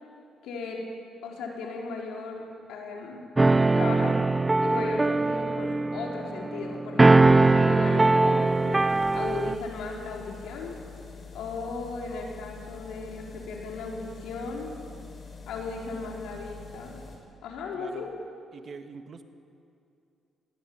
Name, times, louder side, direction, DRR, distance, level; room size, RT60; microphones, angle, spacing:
voice 1, 0.4-0.8 1.2-3.2 3.7-4.2 4.6-10.7 11.3-14.7 15.5-17.0 17.4-18.1, left 4 dB, 85° left, -1 dB, 4.2 m, -36 dB
sound 1, 3.4-9.5, right 2 dB, 20° right, 0.5 m, -21 dB
sound 2, 6.8-17.2, left 5 dB, 40° left, 5.7 m, -46 dB
voice 2, 17.7-18.1 18.5-19.2, right 5 dB, 50° right, 7 dB, 1.6 m, -44 dB
20.5 x 16.5 x 8.8 m, 2.5 s
cardioid pair, 90°, 0 cm